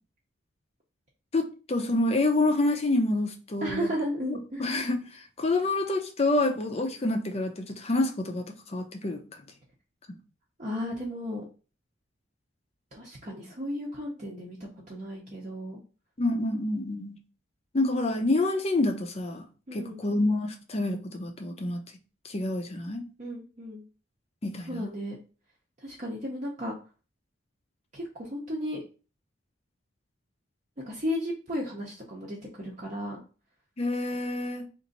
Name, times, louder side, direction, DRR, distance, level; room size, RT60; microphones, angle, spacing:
voice 1, 1.3-3.9 4.6-9.2 10.1-10.2 16.2-17.2 17.7-19.5 19.7-21.8 22.2-23.1 24.4-24.9 33.8-34.7, left 2 dB, 30° left, 0.5 m, -27 dB
voice 2, 3.6-4.7 10.6-11.4 12.9-15.8 19.7-20.0 23.2-23.8 24.7-25.1 25.8-26.8 27.9-28.8 30.8-33.2, equal, 35° right, 0.7 m, -34 dB
3.0 x 2.6 x 3.8 m
head